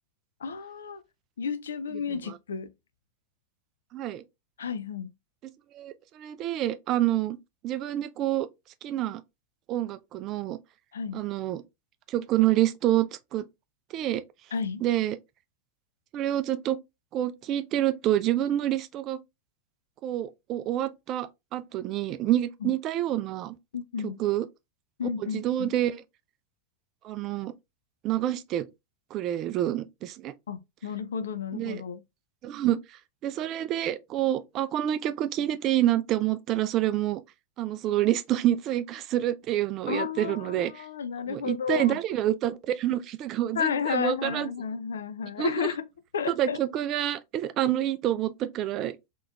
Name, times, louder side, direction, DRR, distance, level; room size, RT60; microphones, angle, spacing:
voice 1, 0.4-1.0 1.4-2.7 4.6-5.1 10.9-11.2 14.5-14.8 22.6-22.7 23.7-24.2 25.0-25.7 30.5-32.0 39.9-42.0 43.5-45.9 46.1-46.6, left 6 dB, 65° left, 0.5 m, -32 dB
voice 2, 3.9-4.2 5.7-7.4 7.6-8.5 8.8-9.2 9.7-10.6 11.1-11.6 12.1-13.5 13.9-14.2 14.8-15.2 16.1-16.8 17.1-19.2 20.0-23.6 24.0-24.5 25.2-26.0 27.0-27.5 28.0-28.7 29.1-30.3 31.5-31.8 32.4-32.8 33.2-37.2 37.6-40.8 41.3-44.5 45.4-45.7 46.3-48.9, right 13 dB, 35° right, 0.4 m, -27 dB
3.9 x 3.0 x 2.4 m
figure-of-eight pair, 90°, 0 cm